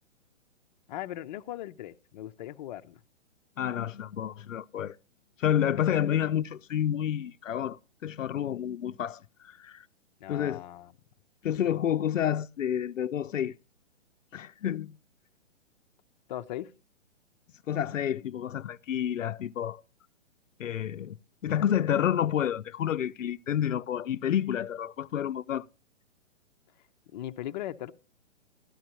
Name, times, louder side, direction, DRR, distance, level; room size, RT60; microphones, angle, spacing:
voice 1, 0.9-3.0 5.9-6.0 10.2-10.9 16.3-16.7 27.1-27.9, left 13 dB, 35° left, 0.6 m, -38 dB
voice 2, 3.6-5.0 5.4-9.8 10.3-10.6 11.4-13.5 14.3-15.0 17.7-19.8 20.6-21.2 21.4-25.7, left 10 dB, 90° left, 0.6 m, -29 dB
13.0 x 11.0 x 2.9 m
hypercardioid pair, 130°, 38 cm